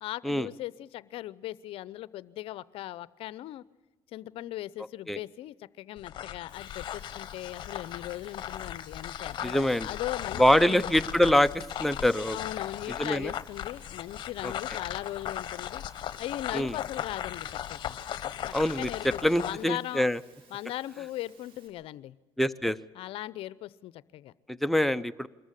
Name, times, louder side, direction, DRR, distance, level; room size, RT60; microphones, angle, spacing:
voice 1, 0.0-3.6 4.1-10.9 12.3-15.8 16.2-18.0 18.4-20.1 20.5-22.1 22.9-24.3, left 14 dB, 65° left, 19 dB, 0.6 m, -39 dB
sound 1, 6.0-19.6, left 10 dB, 50° left, 1.1 m, -38 dB
Water, 6.5-21.7, right 4 dB, 65° right, 5.4 m, -60 dB
voice 2, 9.4-9.9 10.4-12.4 13.0-13.3 14.4-14.5 16.5-16.8 18.5-18.9 19.2-20.2 22.4-22.8 24.5-25.3, left 1 dB, ahead, 11 dB, 0.7 m, -24 dB
23.0 x 14.0 x 9.9 m, 1.2 s
cardioid pair, 100°, 10 cm